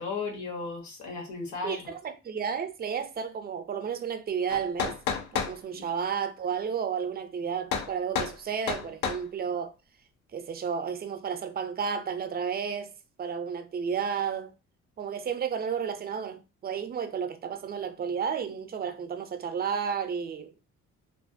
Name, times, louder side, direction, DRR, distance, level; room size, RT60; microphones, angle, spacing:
voice 1, 0.0-1.9 5.7-5.8, left 4 dB, 70° left, 0.9 m, -35 dB
voice 2, 1.6-5.0 5.3-9.7 10.3-12.9 13.2-14.5 15.0-20.5, right 7 dB, 30° right, 0.4 m, -32 dB
sound 1, 4.5-5.6 7.7-8.4 8.7-9.2, left 7 dB, 90° left, 0.5 m, -30 dB
2.4 x 2.1 x 2.5 m
cardioid pair, 90°, 30 cm